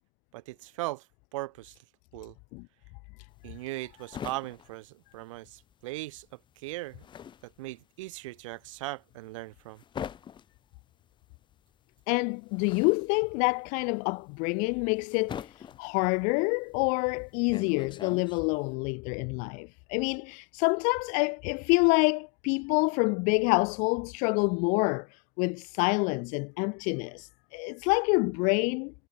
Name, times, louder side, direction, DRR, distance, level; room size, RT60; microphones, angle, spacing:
voice 1, 0.3-1.0 1.3-1.8 2.1-2.3 3.4-6.3 6.6-7.1 7.4-9.8, right 19 dB, 70° right, 1.6 m, -38 dB
sound 1, 3.3-5.8 6.1-18.7, left 8 dB, 30° left, 4.4 m, -44 dB
voice 2, 12.1-25.1 25.4-28.9, left 32 dB, 50° left, 0.4 m, -27 dB
supercardioid pair, 115°, 17 cm